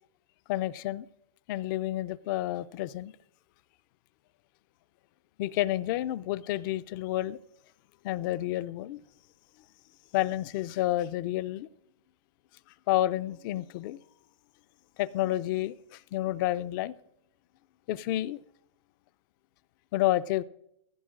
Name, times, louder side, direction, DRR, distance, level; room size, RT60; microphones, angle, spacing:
voice 1, 0.5-1.1 1.5-3.1 5.4-7.4 8.0-9.0 10.1-11.7 12.9-14.0 15.0-16.9 17.9-18.4 19.9-20.4, left 15 dB, 40° left, 0.4 m, -30 dB
15.5 x 15.0 x 2.5 m
hypercardioid pair, 125°, 17 cm